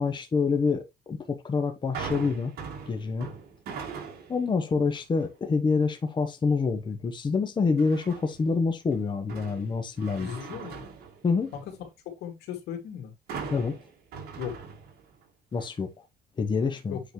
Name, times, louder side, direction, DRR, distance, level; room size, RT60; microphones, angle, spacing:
voice 1, 0.0-2.5 2.9-3.3 4.3-10.4 11.2-11.5 13.5-13.8 15.5-15.9 16.4-17.0, left 4 dB, 25° left, 1.0 m, -27 dB
sound 1, 1.9-4.5 4.9-5.3 7.8-8.5 8.9-11.8 13.3-15.2 15.6-15.7, right 6 dB, 70° right, 2.2 m, -40 dB
voice 2, 10.2-10.8 12.1-13.1 14.4-14.6 16.9-17.0, left 9 dB, 80° left, 2.4 m, -37 dB
8.2 x 4.0 x 3.1 m
cardioid pair, 110°, 17 cm